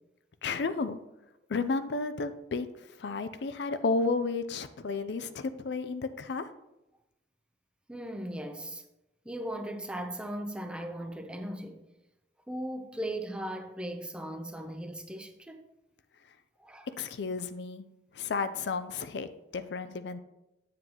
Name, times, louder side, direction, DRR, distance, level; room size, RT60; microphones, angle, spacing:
voice 1, 0.4-1.0 1.5-2.7 3.0-6.5 17.0-17.8 18.1-20.2, left 4 dB, 75° left, 0.5 m, -32 dB
voice 2, 7.9-8.8 9.2-11.8 12.5-15.7 16.6-16.9, right 1 dB, 5° right, 0.6 m, -38 dB
8.0 x 7.5 x 3.0 m
head